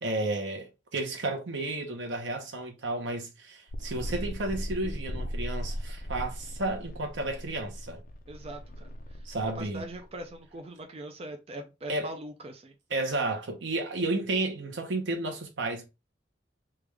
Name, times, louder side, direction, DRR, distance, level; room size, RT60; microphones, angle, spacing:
voice 1, 0.0-8.0 9.2-9.9 11.9-12.1 12.9-15.9, right 2 dB, 80° right, 0.9 m, -32 dB
sound 1, 3.7-10.3, equal, 45° left, 0.5 m, -38 dB
voice 2, 8.3-8.9 9.6-12.7, right 1 dB, 35° right, 0.4 m, -41 dB
3.4 x 2.4 x 3.3 m
head